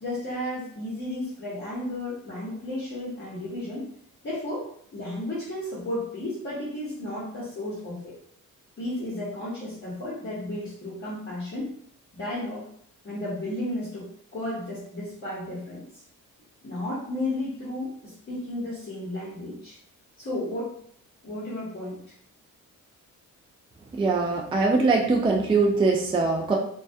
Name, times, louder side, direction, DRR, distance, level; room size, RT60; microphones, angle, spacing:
voice 1, 0.0-3.9 4.2-8.1 8.8-11.7 12.1-12.7 13.0-15.9 16.6-19.8 20.2-20.8 21.2-22.0, left 1 dB, 35° left, -8 dB, 0.9 m, -33 dB
voice 2, 24.0-26.5, right 3 dB, 15° right, 0 dB, 0.3 m, -22 dB
2.2 x 2.2 x 2.6 m, 0.64 s
cardioid pair, 95°, 33 cm